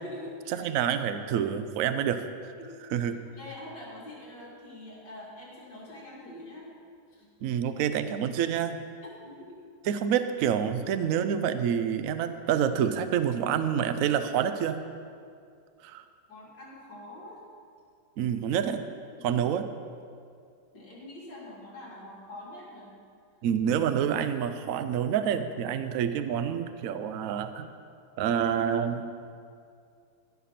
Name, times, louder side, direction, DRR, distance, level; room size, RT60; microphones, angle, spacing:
voice 1, 0.0-0.7 2.6-2.7 3.4-6.7 7.1-7.3 9.0-9.6 16.3-17.4 19.2-19.4 20.7-22.9, left 1 dB, 65° left, -5 dB, 3.1 m, -45 dB
voice 2, 0.6-2.5 2.9-3.2 7.4-8.8 9.9-14.8 15.8-16.1 18.2-18.8 19.2-19.7 23.4-27.7 28.2-29.1, right 8 dB, 80° right, 10 dB, 0.7 m, -27 dB
15.0 x 5.9 x 5.8 m, 2.3 s
omnidirectional pair, 2.0 m